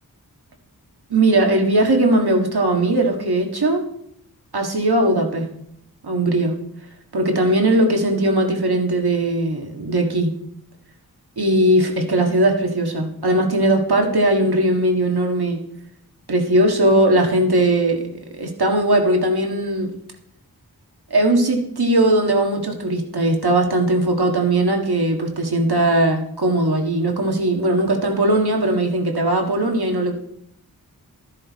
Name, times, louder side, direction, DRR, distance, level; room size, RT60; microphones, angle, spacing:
voice 1, 1.1-3.8 4.5-5.5 6.0-6.6 7.1-10.3 11.4-15.6 16.3-18.0 18.4-19.9 21.1-30.2, right 1 dB, 80° right, 3 dB, 1.8 m, -19 dB
12.5 x 10.5 x 4.2 m, 0.73 s
wide cardioid pair, 40°, 38 cm